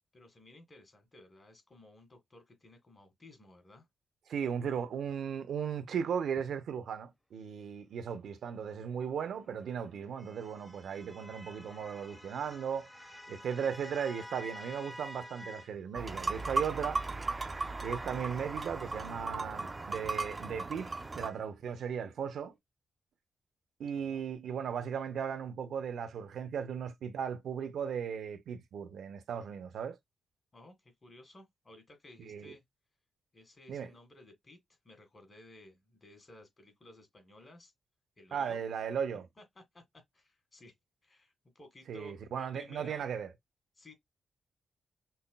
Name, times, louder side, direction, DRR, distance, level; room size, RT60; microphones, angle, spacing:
voice 1, 0.1-3.9 23.9-24.3 30.5-32.6 33.3-34.6 34.8-37.7 38.2-38.6 39.4-39.8 40.1-40.7 41.0-43.1 43.8-43.9, left 1 dB, 30° left, 1.7 m, -56 dB
voice 2, 4.3-12.9 13.3-17.0 17.8-22.5 23.8-30.0 32.2-32.5 33.7-33.9 38.3-39.3 41.9-43.3, right 7 dB, 80° right, 0.6 m, -37 dB
sound 1, 9.1-15.7 16.1-21.4, equal, 5° left, 1.0 m, -51 dB
sheep bells, 15.9-21.3, right 3 dB, 30° right, 0.3 m, -36 dB
5.6 x 2.2 x 2.2 m
cardioid pair, 85°, 0 cm